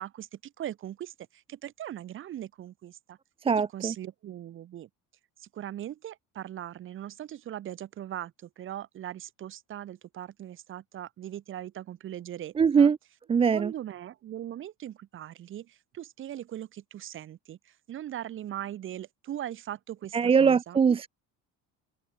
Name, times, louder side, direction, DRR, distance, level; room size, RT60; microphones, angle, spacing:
voice 1, 0.0-3.2 3.7-4.9 5.4-12.9 13.5-20.8, right 11 dB, 35° right, 1.8 m, -40 dB
voice 2, 3.4-3.9 12.6-13.0 13.3-13.7 20.1-21.1, right 6 dB, 15° right, 0.6 m, -22 dB
cardioid pair, 175°, 34 cm